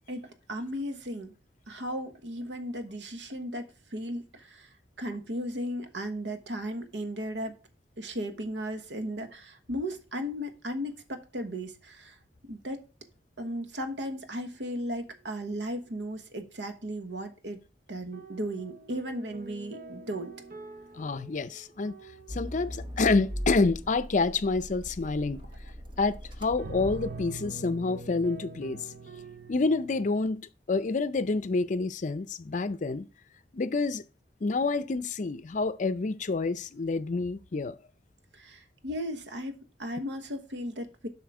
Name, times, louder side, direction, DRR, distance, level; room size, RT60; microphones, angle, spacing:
voice 1, 0.5-1.3 1.7-3.6 3.9-4.7 5.0-7.5 8.0-12.1 12.5-12.8 13.4-17.6 17.9-20.3 38.4-39.5 39.8-41.1, equal, 85° right, 1.2 m, -35 dB
sound 1, 18.1-22.6 23.2-23.6 26.6-30.1, right 3 dB, 55° right, 0.8 m, -44 dB
voice 2, 20.9-22.0 22.3-25.4 26.0-28.8 29.5-33.1 33.5-34.0 34.4-37.7, left 3 dB, 45° left, 0.5 m, -28 dB
Accelerating revving vroom, 22.3-27.7, equal, 30° right, 0.9 m, -39 dB
7.7 x 5.6 x 4.7 m
head